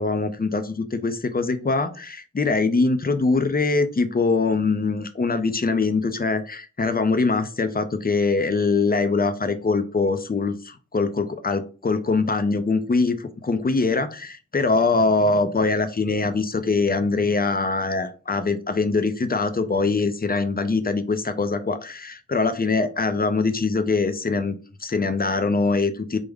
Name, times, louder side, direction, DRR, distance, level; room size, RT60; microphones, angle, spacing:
voice 1, 0.0-26.2, left 3 dB, 30° left, 10 dB, 0.4 m, -23 dB
3.4 x 2.1 x 3.4 m, 0.37 s
wide cardioid pair, 40°, 29 cm